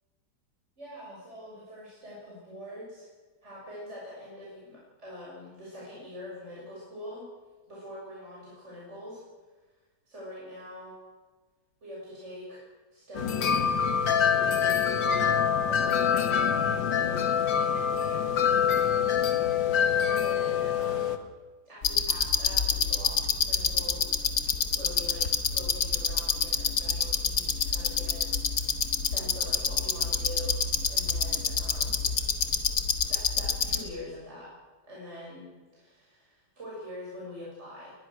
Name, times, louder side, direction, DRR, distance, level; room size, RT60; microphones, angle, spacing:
voice 1, 0.8-3.1 3.4-7.3 7.7-9.2 10.1-11.0 11.8-13.8 14.3-18.3 19.5-21.3 21.7-24.1 24.4-24.5 24.7-30.6 30.9-32.1 33.1-34.5 34.9-35.5 35.7-37.9, left 1 dB, 35° right, -6 dB, 7.1 m, -44 dB
sound 1, 13.1-21.2, left 8 dB, 70° left, 2.1 m, -25 dB
sound 2, 21.8-33.8, left 6 dB, 50° left, 2.2 m, -27 dB
21.5 x 21.0 x 6.4 m, 1.3 s
omnidirectional pair, 2.2 m